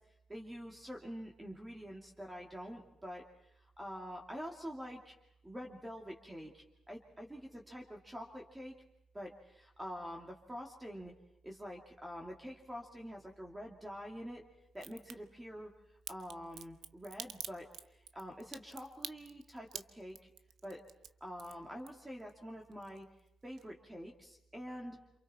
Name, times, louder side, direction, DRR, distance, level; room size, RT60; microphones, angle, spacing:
voice 1, 0.3-5.1 5.4-8.7 9.1-11.1 11.4-14.4 14.7-15.7 16.1-20.3 20.6-20.8 21.2-23.0 23.4-25.2, equal, 10° right, 0 dB, 2.7 m, -46 dB
Crack, 14.7-15.1 16.1-22.3 22.6-23.3 23.6-23.7, right 9 dB, 70° right, 1.0 m, -46 dB
28.5 x 27.5 x 4.4 m, 0.82 s
cardioid pair, 165°, 0 cm